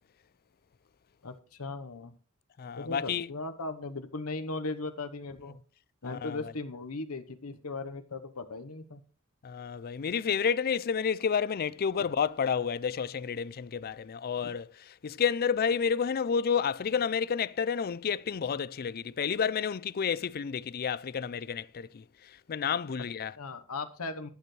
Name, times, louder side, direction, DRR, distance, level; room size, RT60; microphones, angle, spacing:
voice 1, 1.2-2.1 2.8-5.6 6.0-9.0 12.0-12.1 14.4-14.5 23.4-24.3, left 3 dB, 85° left, 1.1 m, -38 dB
voice 2, 2.6-3.3 6.0-6.5 9.4-14.7 15.0-22.0 22.5-23.3, left 6 dB, 45° left, 0.4 m, -30 dB
20.5 x 6.8 x 3.2 m
head